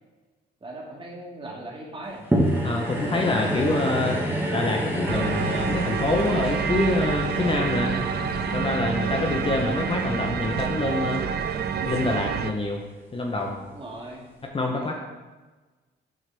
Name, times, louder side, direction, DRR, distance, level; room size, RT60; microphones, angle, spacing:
voice 1, 0.6-2.2 3.3-3.7 13.7-14.3 14.7-15.1, right 1 dB, 25° right, -3 dB, 2.0 m, -39 dB
sound 1, 2.3-12.8 13.4-13.5, equal, 10° right, 1.4 m, -30 dB
voice 2, 2.6-4.2 4.5-8.0 8.5-11.3 11.8-12.8 13.1-13.6 14.5-14.9, left 2 dB, 25° left, 1 dB, 0.9 m, -26 dB
sound 2, 5.1-12.5, right 6 dB, 55° right, 0.5 m, -28 dB
7.6 x 4.7 x 3.4 m, 1.2 s
cardioid pair, 90°, 20 cm